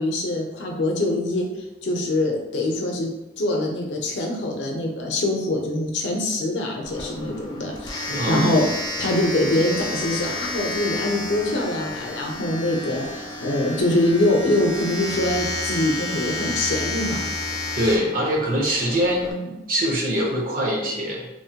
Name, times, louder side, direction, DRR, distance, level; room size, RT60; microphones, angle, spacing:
voice 1, 0.0-1.5 1.8-3.1 3.4-8.7 9.0-17.3 19.2-19.5, left 1 dB, 80° left, 1 dB, 0.6 m, -24 dB
Domestic sounds home sounds, 6.8-19.3, left 2 dB, 20° left, 0.4 m, -31 dB
voice 2, 8.0-8.7 17.7-19.2 19.7-21.3, equal, 50° right, -2 dB, 0.6 m, -23 dB
3.0 x 2.1 x 2.8 m, 1.0 s
head